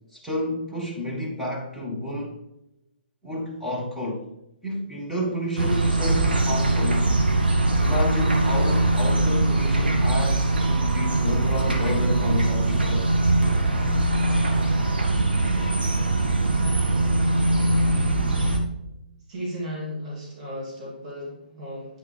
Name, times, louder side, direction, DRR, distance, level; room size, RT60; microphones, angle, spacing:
voice 1, 0.1-2.4 3.2-4.2 4.6-7.1 7.8-13.1, left 1 dB, ahead, -4 dB, 1.4 m, -30 dB
sound 1, 5.6-18.6, right 2 dB, 70° right, 1.4 m, -22 dB
voice 2, 19.3-22.0, equal, 40° right, -5 dB, 2.6 m, -35 dB
8.8 x 5.5 x 3.3 m, 0.88 s
figure-of-eight pair, 130°, 5 cm